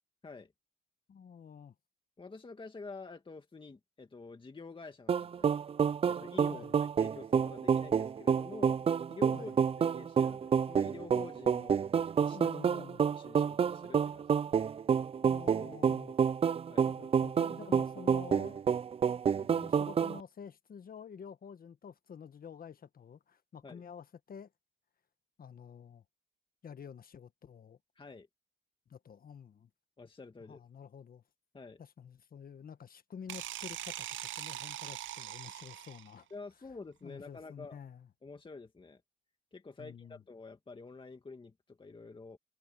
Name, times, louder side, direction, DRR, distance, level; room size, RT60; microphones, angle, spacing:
voice 1, 1.1-1.7 6.5-6.7 9.3-9.6 12.3-13.0 15.2-16.2 16.8-18.6 19.0-24.5 25.4-26.0 26.6-27.8 28.9-29.7 30.4-31.2 31.8-36.3 37.0-38.1 39.8-40.2, left 7 dB, 45° left, 1.5 m, -49 dB
voice 2, 2.2-5.5 6.0-9.5 9.8-11.8 12.2-12.9 13.1-14.6 16.7-16.9 23.6-23.8 28.0-28.3 30.0-30.6 31.5-31.8 36.3-37.8 38.2-39.0 39.5-42.4, left 3 dB, 25° left, 2.0 m, -48 dB
sound 1, 5.1-20.2, right 7 dB, 30° right, 0.4 m, -29 dB
sound 2, 33.3-36.2, right 13 dB, 75° right, 0.7 m, -42 dB
cardioid pair, 90°, 20 cm